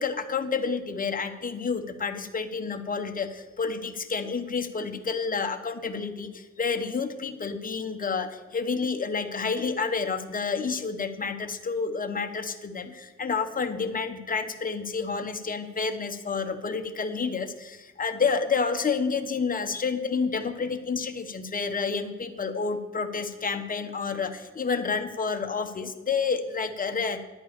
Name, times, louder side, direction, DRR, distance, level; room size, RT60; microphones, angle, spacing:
voice 1, 0.0-3.3 3.6-6.3 6.6-27.2, left 5 dB, 30° left, 7 dB, 1.0 m, -29 dB
11.5 x 4.6 x 8.3 m, 1.2 s
cardioid pair, 90°, 30 cm